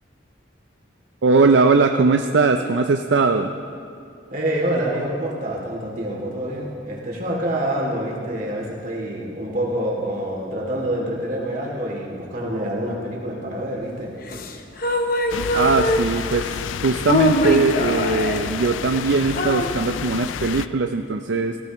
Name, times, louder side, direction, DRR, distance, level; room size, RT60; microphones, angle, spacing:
voice 1, 1.2-3.5 15.5-16.6 16.8-21.6, right 4 dB, 65° right, 6 dB, 0.5 m, -20 dB
voice 2, 4.3-14.1, right 1 dB, 45° right, -3 dB, 2.6 m, -26 dB
sound 1, 14.2-16.3 16.9-18.5 18.9-19.0 19.4-19.7, left 1 dB, 50° left, 0.9 m, -22 dB
sound 2, 15.3-20.7, left 8 dB, 80° left, 0.3 m, -30 dB
19.0 x 15.0 x 3.1 m, 2.5 s
head